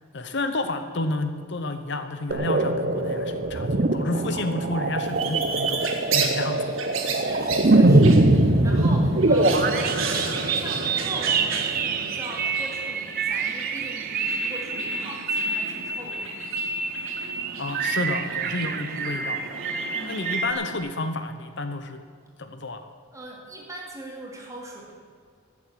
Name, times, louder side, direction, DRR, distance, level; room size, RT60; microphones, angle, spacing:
voice 1, 0.1-6.7 17.6-19.5 20.1-22.0 22.4-22.9, left 2 dB, 55° left, 8 dB, 0.8 m, -30 dB
sound 1, 2.3-20.5, right 2 dB, 45° right, 0.8 m, -24 dB
sound 2, 5.0-20.8, right 5 dB, 70° right, 1.7 m, -34 dB
voice 2, 7.1-16.3 19.9-20.3 23.1-24.9, right 1 dB, 15° right, -1 dB, 2.4 m, -40 dB
13.5 x 7.3 x 9.0 m, 2.1 s
head